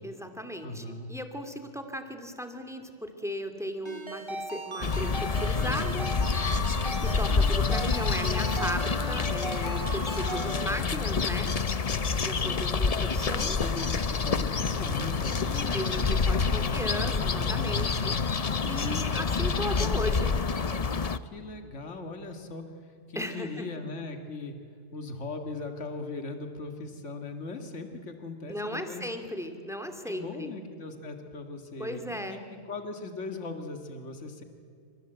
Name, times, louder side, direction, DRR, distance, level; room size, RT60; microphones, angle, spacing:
voice 1, 0.0-6.1 7.0-11.5 12.2-13.6 15.7-18.2 18.6-20.3 23.1-23.7 28.5-30.5 31.8-32.4, equal, ahead, 6 dB, 2.4 m, -36 dB
voice 2, 0.6-1.1 12.4-12.7 13.5-18.0 18.8-19.1 21.2-24.6 24.9-29.1 30.1-34.4, left 3 dB, 75° left, 5 dB, 2.3 m, -39 dB
Ringtone, 3.9-10.7, right 2 dB, 20° right, 2.4 m, -38 dB
sound 1, 4.8-21.2, left 5 dB, 35° left, 0.8 m, -28 dB
28.5 x 26.0 x 8.0 m, 2.4 s
omnidirectional pair, 1.3 m